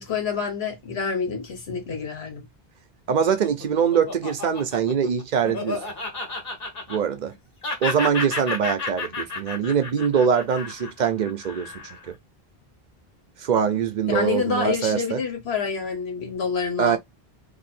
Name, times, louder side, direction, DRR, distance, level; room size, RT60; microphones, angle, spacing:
voice 1, 0.0-2.5 14.1-17.0, left 5 dB, 90° left, 1.3 m, -27 dB
Laughter, 3.1-7.3 7.6-12.1, left 3 dB, 65° left, 1.4 m, -32 dB
voice 2, 3.1-5.8 6.9-7.3 7.8-11.7 12.1-12.2 13.4-15.2 16.8-17.0, right 7 dB, 50° right, 0.7 m, -23 dB
2.7 x 2.7 x 4.2 m
omnidirectional pair, 1.0 m